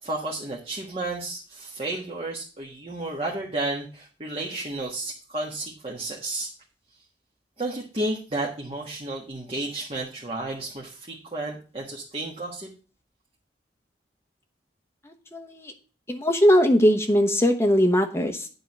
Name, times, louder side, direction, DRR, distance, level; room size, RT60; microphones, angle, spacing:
voice 1, 0.0-6.5 7.6-12.7, right 2 dB, 30° right, -2 dB, 1.4 m, -32 dB
voice 2, 15.0-15.7 16.1-18.5, equal, 15° left, 3 dB, 1.0 m, -20 dB
9.6 x 3.7 x 7.2 m, 0.37 s
head